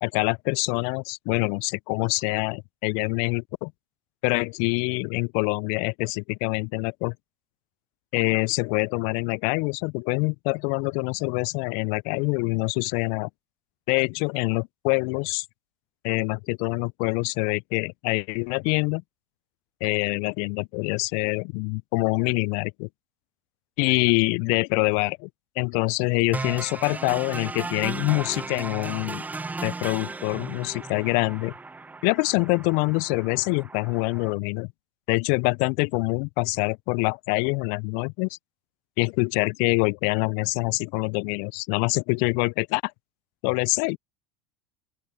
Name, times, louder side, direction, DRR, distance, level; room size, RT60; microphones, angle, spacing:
voice 1, 0.0-3.7 4.2-7.1 8.1-13.3 13.9-15.5 16.0-19.0 19.8-22.9 23.8-25.3 25.6-29.2 29.6-31.5 32.0-34.7 35.1-38.4 39.0-42.9 43.4-44.0, left 35 dB, 55° left, 0.5 m, -25 dB
sound 1, 26.3-34.3, right 3 dB, 10° right, 0.5 m, -36 dB
open air
hypercardioid pair, 80°, 16 cm